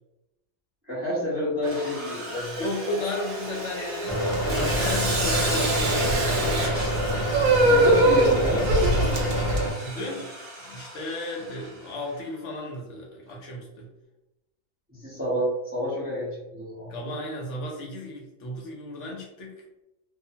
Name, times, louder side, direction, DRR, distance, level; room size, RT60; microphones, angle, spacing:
voice 1, 0.9-3.0 7.7-8.7 14.9-16.9, equal, 15° right, -8 dB, 0.6 m, -29 dB
Sawing, 1.6-11.9, right 1 dB, 60° right, 1.0 m, -32 dB
voice 2, 2.6-6.7 9.8-10.3 10.6-13.9 16.9-19.5, left 1 dB, 70° left, -1 dB, 0.9 m, -34 dB
sound 1, 4.1-9.7, equal, 40° left, 0.5 m, -27 dB
sound 2, 4.3-9.6, right 2 dB, 85° right, 1.0 m, -22 dB
2.5 x 2.1 x 2.7 m, 0.94 s
omnidirectional pair, 1.4 m